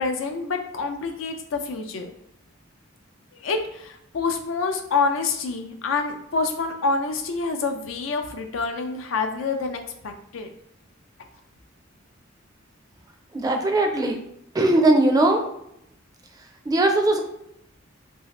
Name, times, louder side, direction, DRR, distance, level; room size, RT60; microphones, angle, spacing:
voice 1, 0.0-2.1 3.3-10.5, left 4 dB, 80° left, 5 dB, 0.4 m, -27 dB
voice 2, 13.3-14.2 14.5-15.5 16.7-17.2, right 2 dB, 20° right, 3 dB, 0.4 m, -19 dB
2.8 x 2.7 x 3.1 m, 0.78 s
head